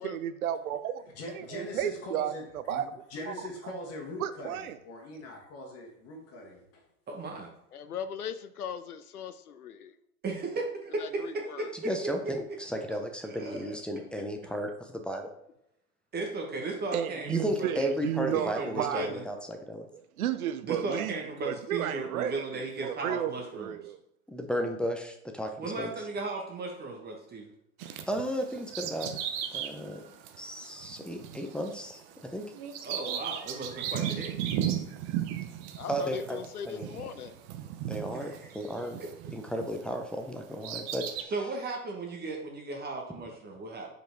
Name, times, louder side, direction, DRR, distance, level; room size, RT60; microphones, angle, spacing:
voice 1, 0.0-1.0 1.5-2.3 2.7-2.8 3.3-3.4 4.2-4.8 16.9-19.1 20.2-21.2 21.5-22.4 22.8-24.0, right 11 dB, 75° right, 12 dB, 0.6 m, -32 dB
voice 2, 1.1-2.8 3.1-6.8, left 2 dB, 35° left, 1 dB, 1.7 m, -42 dB
voice 3, 7.1-7.5 10.2-11.2 11.6-11.9 12.9-13.0 13.2-13.8 16.1-17.3 17.6-17.9 18.3-19.2 20.6-23.9 25.6-27.5 32.8-34.3 38.2-38.6 39.0-39.1 41.3-43.9, right 3 dB, 20° right, 1 dB, 1.2 m, -36 dB
voice 4, 7.7-10.0 11.0-11.7 13.3-13.4 35.8-37.4, left 8 dB, 90° left, 12 dB, 0.7 m, -39 dB
voice 5, 11.8-15.3 17.3-19.9 24.3-25.9 28.1-29.1 29.5-30.0 30.4-32.4 35.9-36.4 36.7-36.9 37.9-39.0 39.3-41.3, equal, ahead, 3 dB, 0.6 m, -34 dB
Bird vocalization bird call bird song, 27.8-39.9 40.3-41.2, right 10 dB, 45° right, 0.8 m, -36 dB
5.1 x 4.6 x 4.6 m, 0.78 s
hypercardioid pair, 100°, 43 cm